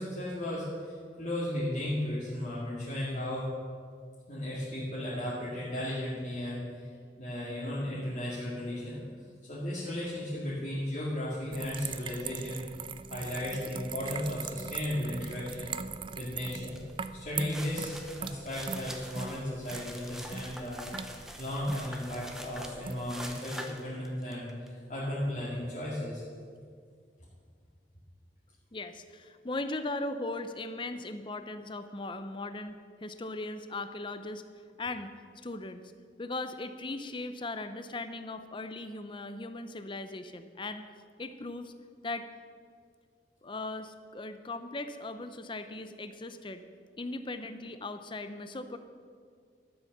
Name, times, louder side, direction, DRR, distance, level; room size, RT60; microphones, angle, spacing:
voice 1, 0.0-3.5 4.3-6.9 7.2-9.0 9.5-12.6 13.1-15.7 16.2-16.8 17.1-26.2, left 1 dB, 45° left, -9 dB, 2.2 m, -35 dB
sound 1, 11.5-23.4, right 6 dB, 30° right, 0.3 m, -41 dB
sound 2, 16.7-16.9 17.3-24.7, equal, 5° right, 0.9 m, -44 dB
voice 2, 28.7-34.4 34.8-35.1 35.4-35.8 36.2-40.8 41.2-41.7 42.0-42.3 43.4-46.6 47.0-48.8, left 2 dB, 30° left, 10 dB, 0.6 m, -38 dB
12.5 x 7.6 x 6.6 m, 2.1 s
head